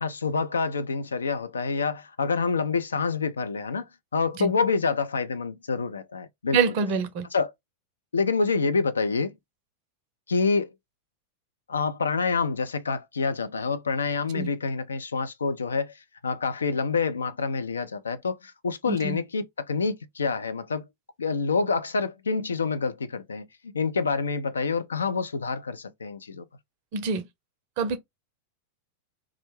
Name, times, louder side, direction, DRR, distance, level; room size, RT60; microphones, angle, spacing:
voice 1, 0.0-6.6 7.3-7.5 8.1-9.3 10.3-10.7 11.7-20.9 21.2-26.4, left 4 dB, 70° left, 0.4 m, -27 dB
voice 2, 6.5-7.3 14.3-14.5 18.9-19.2 26.9-27.2 27.8-28.0, right 5 dB, 45° right, 0.5 m, -25 dB
2.4 x 2.0 x 3.1 m
figure-of-eight pair, 90°, 0 cm